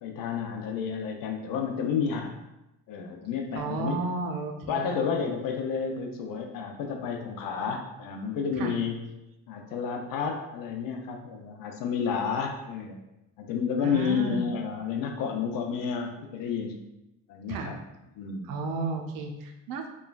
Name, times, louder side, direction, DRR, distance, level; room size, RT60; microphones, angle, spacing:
voice 1, 0.0-2.3 2.9-4.0 4.7-9.0 9.5-13.0 13.4-16.8 17.3-17.8 18.2-18.5, left 6 dB, 80° left, 3 dB, 0.5 m, -31 dB
voice 2, 3.5-5.0 8.5-8.8 13.8-14.5 17.5-17.7 18.4-19.9, right 3 dB, 80° right, 4 dB, 0.5 m, -33 dB
3.0 x 2.2 x 2.3 m, 0.91 s
cardioid pair, 140°, 33 cm